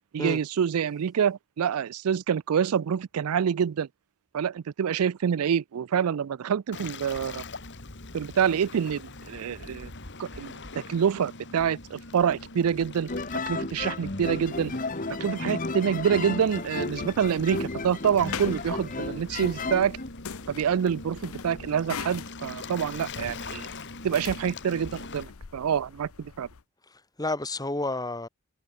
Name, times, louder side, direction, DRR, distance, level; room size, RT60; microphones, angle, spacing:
voice 1, 0.1-3.9 4.3-7.4 8.1-9.9 10.2-10.5 10.9-13.1 13.5-14.7 15.2-20.0 20.5-23.7 24.0-26.5, right 8 dB, 80° right, 0.4 m, -26 dB
Waves surf, 6.7-25.2, left 3 dB, 55° left, 3.0 m, -42 dB
sound 1, 13.1-20.1, left 3 dB, 35° left, 1.6 m, -33 dB
sound 2, 16.9-26.6, left 7 dB, 70° left, 0.7 m, -43 dB
voice 2, 26.9-28.3, left 2 dB, 15° left, 2.2 m, -31 dB
head